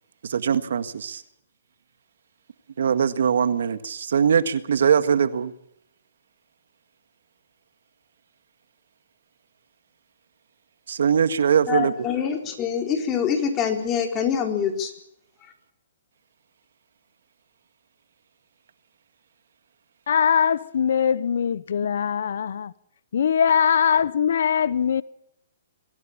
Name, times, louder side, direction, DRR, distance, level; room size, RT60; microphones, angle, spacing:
voice 1, 0.3-1.2 2.8-5.5 10.9-12.1, right 7 dB, 75° right, 1.8 m, -21 dB
voice 2, 11.7-14.9, left 7 dB, 25° left, 4.2 m, -25 dB
voice 3, 20.1-22.7 23.1-25.0, left 7 dB, 70° left, 0.9 m, -21 dB
24.0 x 16.0 x 8.8 m
hypercardioid pair, 140°, 0 cm